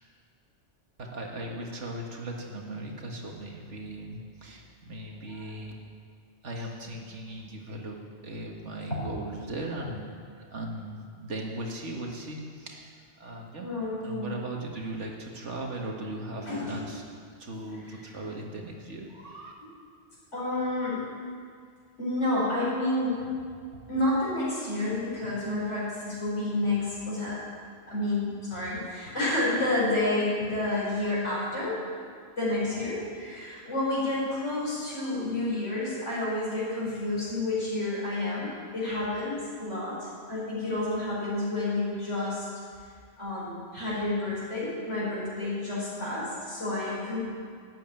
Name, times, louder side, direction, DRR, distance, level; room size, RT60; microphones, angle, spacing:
voice 1, 1.0-5.7 6.4-13.7 14.0-17.0 17.4-19.5, right 1 dB, 80° right, 0 dB, 2.1 m, -38 dB
voice 2, 13.6-14.4 16.4-16.8 17.7-17.9 19.6-19.7 20.3-21.1 22.0-23.3 23.9-27.4 27.9-31.8 32.4-42.5 43.2-47.2, left 2 dB, 85° left, -8 dB, 5.1 m, -30 dB
12.5 x 8.6 x 9.0 m, 2.1 s
omnidirectional pair, 1.2 m